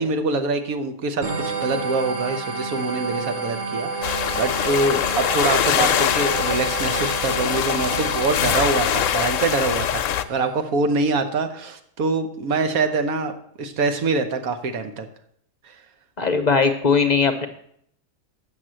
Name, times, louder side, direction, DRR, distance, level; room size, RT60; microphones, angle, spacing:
voice 1, 0.0-13.3 13.6-15.0, right 3 dB, 85° right, 8 dB, 1.4 m, -24 dB
sound 1, 1.2-10.6, right 4 dB, 70° right, 1.6 m, -30 dB
sound 2, 4.0-10.2, left 10 dB, 70° left, 0.9 m, -23 dB
voice 2, 16.2-17.5, left 5 dB, 45° left, 7 dB, 0.6 m, -19 dB
7.8 x 6.3 x 7.5 m, 0.68 s
omnidirectional pair, 1.5 m